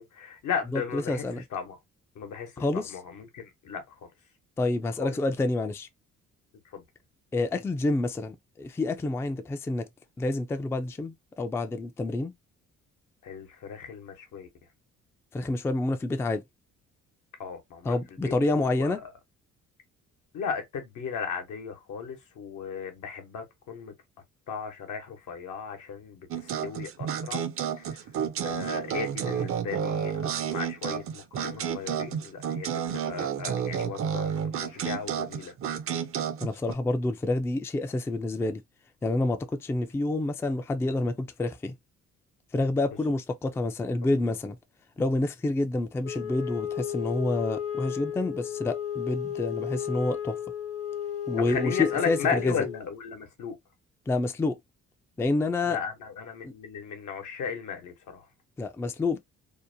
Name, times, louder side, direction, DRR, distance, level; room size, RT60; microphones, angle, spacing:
voice 1, 0.0-1.2 1.5-1.8 2.2-2.6 2.9-4.1 5.0-5.1 6.7-6.8 13.2-14.5 17.4-18.0 18.2-18.3 18.6-19.0 20.3-23.9 24.5-27.4 27.8-28.0 28.4-35.5 51.5-53.6 55.6-58.2, left 6 dB, 75° left, 1.0 m, -35 dB
voice 2, 0.7-1.4 2.6-3.0 4.6-5.9 7.3-9.9 10.2-12.3 15.3-16.4 17.8-19.0 36.4-38.6 39.0-41.7 42.5-44.6 45.0-50.4 51.3-52.6 54.1-54.6 55.2-55.8 56.4-56.5 58.6-59.2, left 2 dB, 10° left, 0.3 m, -28 dB
sound 1, 26.3-36.7, right 8 dB, 45° right, 0.5 m, -31 dB
Wind instrument woodwind instrument, 46.0-52.8, left 9 dB, 50° left, 0.8 m, -34 dB
2.7 x 2.1 x 2.6 m
cardioid pair, 90°, 30 cm